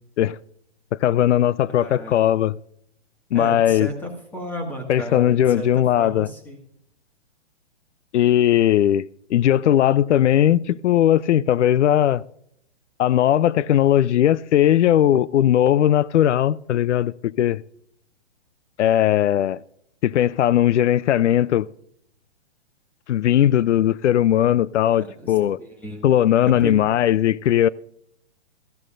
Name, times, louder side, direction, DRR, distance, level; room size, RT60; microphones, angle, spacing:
voice 1, 1.0-2.6 3.3-3.9 4.9-6.3 8.1-9.0 9.3-12.2 13.0-17.6 18.8-19.6 20.0-21.7 23.1-25.6 26.0-27.7, left 11 dB, 85° left, 0.5 m, -18 dB
voice 2, 1.8-2.2 3.3-5.7 6.0-6.6 25.0-25.3 25.6-26.0 26.6-26.7, equal, 5° left, 1.7 m, -33 dB
18.5 x 14.5 x 2.5 m
hypercardioid pair, 155°, 35 cm